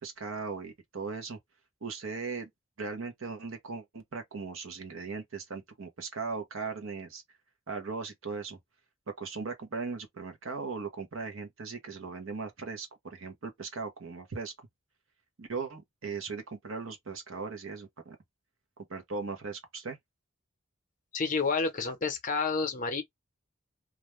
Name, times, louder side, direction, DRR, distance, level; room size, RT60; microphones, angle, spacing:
voice 1, 0.0-1.4 1.8-2.5 2.8-7.2 7.7-8.6 9.2-14.5 15.4-18.2 18.8-20.0, right 4 dB, 65° right, 0.7 m, -38 dB
voice 2, 21.1-23.0, left 4 dB, 40° left, 0.7 m, -29 dB
2.4 x 2.2 x 3.0 m
head